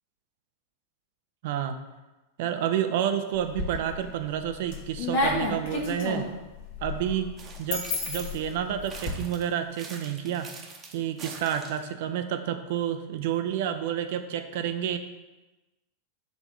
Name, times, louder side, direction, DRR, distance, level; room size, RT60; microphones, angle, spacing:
voice 1, 1.4-1.8 2.4-6.3 6.8-7.3 7.6-10.5 10.9-15.0, right 9 dB, 50° right, 8 dB, 0.5 m, -29 dB
sound 1, 3.3-4.0 4.5-9.1, left 2 dB, 50° left, 1.1 m, -31 dB
sound 2, 7.4-8.5 8.9-11.9, right 4 dB, 25° right, 0.9 m, -44 dB
5.1 x 3.5 x 5.4 m, 1.1 s
figure-of-eight pair, 90°, 0 cm